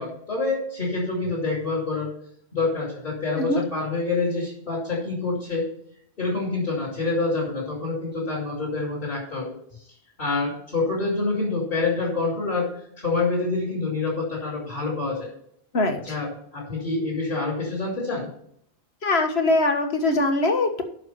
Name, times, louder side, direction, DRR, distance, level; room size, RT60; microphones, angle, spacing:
voice 1, 0.0-2.1 2.5-5.7 6.2-9.5 10.2-15.3 16.0-18.3, left 3 dB, 55° left, -8 dB, 5.9 m, -27 dB
voice 2, 15.7-16.2 19.0-20.8, left 2 dB, 75° left, 4 dB, 1.8 m, -22 dB
11.0 x 6.5 x 5.7 m, 0.67 s
omnidirectional pair, 1.1 m